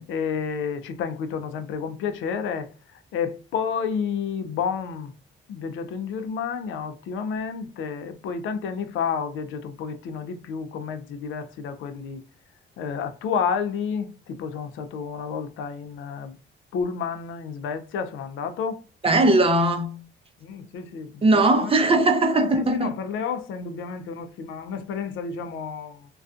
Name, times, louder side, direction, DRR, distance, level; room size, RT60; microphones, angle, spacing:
voice 1, 0.1-2.7 3.1-5.1 5.5-12.2 12.8-16.4 16.7-18.8 20.4-21.7 22.3-26.1, left 6 dB, 80° left, 0.4 m, -30 dB
voice 2, 19.0-20.0 21.2-22.9, right 2 dB, 30° right, 0.5 m, -19 dB
2.4 x 2.3 x 2.3 m
cardioid pair, 90°, 20 cm